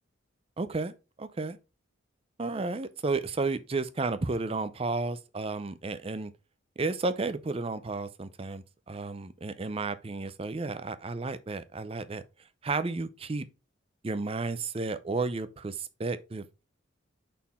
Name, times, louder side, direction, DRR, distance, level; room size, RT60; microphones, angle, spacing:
voice 1, 0.6-1.6 2.4-6.3 6.8-12.2 12.6-13.4 14.0-16.6, right 3 dB, 30° right, 0.5 m, -32 dB
5.6 x 4.3 x 4.3 m
head